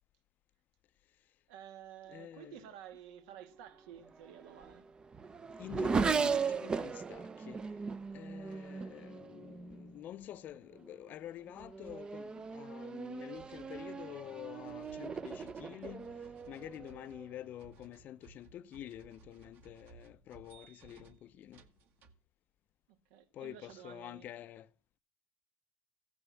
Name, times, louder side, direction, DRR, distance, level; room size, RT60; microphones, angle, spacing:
voice 1, 1.5-4.9 23.1-24.3, right 10 dB, 75° right, 2.0 m, -52 dB
voice 2, 2.1-2.6 5.6-7.6 8.1-21.6 23.3-24.7, left 12 dB, 40° left, 0.6 m, -48 dB
sound 1, 2.8-2.9 7.3-7.4 8.0-8.2 8.5-8.6 8.9-9.0 9.2-9.3 9.4-9.5 9.7-9.8 10.3-10.4 10.9-11.0 11.6-12.3 13.3-22.1, right 4 dB, 45° right, 1.7 m, -61 dB
Race car auto racing / Accelerating revving vroom, 4.1-9.9 10.7-11.1 11.5-17.5, right 5 dB, 20° right, 0.6 m, -38 dB
16.0 x 7.0 x 8.3 m
cardioid pair, 140°, 5 cm